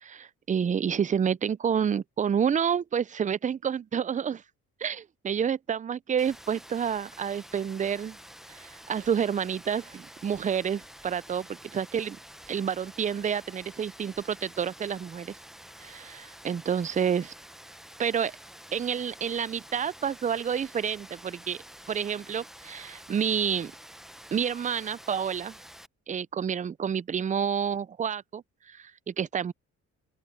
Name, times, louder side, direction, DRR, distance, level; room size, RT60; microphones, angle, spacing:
voice 1, 0.0-4.4 4.8-8.2 8.5-12.2 12.5-15.3 15.8-17.3 18.0-18.3 18.7-21.6 21.9-23.7 24.3-25.5 26.1-29.5, right 7 dB, 25° right, 0.4 m, -29 dB
Rain, 6.2-25.9, equal, ahead, 0.8 m, -49 dB
open air
cardioid pair, 90°, 30 cm